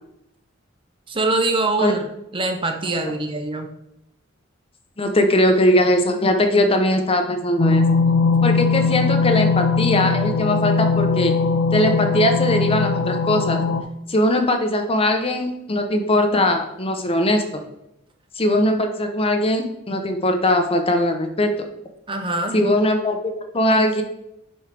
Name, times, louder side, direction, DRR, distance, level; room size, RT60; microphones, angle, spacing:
voice 1, 1.1-2.1 2.3-3.7 22.1-22.6, right 2 dB, 25° right, 5 dB, 0.7 m, -23 dB
voice 2, 5.0-7.8 8.4-11.3 11.7-13.6 14.1-17.4 18.4-21.7 22.5-24.0, left 1 dB, 30° left, 5 dB, 0.8 m, -20 dB
sound 1, 7.6-13.8, left 4 dB, 80° left, 0.9 m, -20 dB
7.6 x 5.4 x 3.4 m, 0.83 s
head